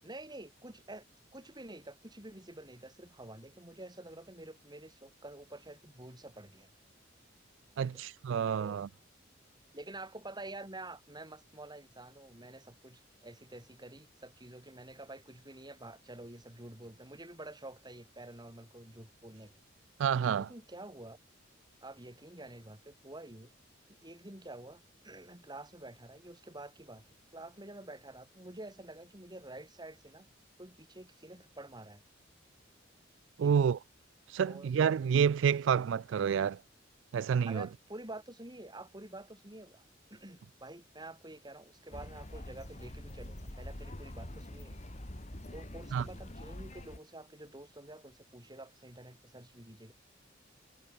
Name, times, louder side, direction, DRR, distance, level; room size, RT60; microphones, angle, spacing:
voice 1, 0.0-1.0 1.3-6.7 7.8-8.0 8.6-8.8 9.7-19.5 20.4-21.2 21.8-23.5 23.9-27.0 27.3-30.3 30.6-32.0 33.4-33.6 34.4-34.7 37.5-39.8 40.1-44.8 45.5-49.9, right 2 dB, 20° right, 7.6 m, -48 dB
voice 2, 7.8-8.9 20.0-20.5 33.4-33.8 34.3-36.6 37.1-37.7 45.9-46.0, right 7 dB, 70° right, 0.3 m, -28 dB
sound 1, 41.9-47.0, left 1 dB, 35° left, 2.3 m, -45 dB
head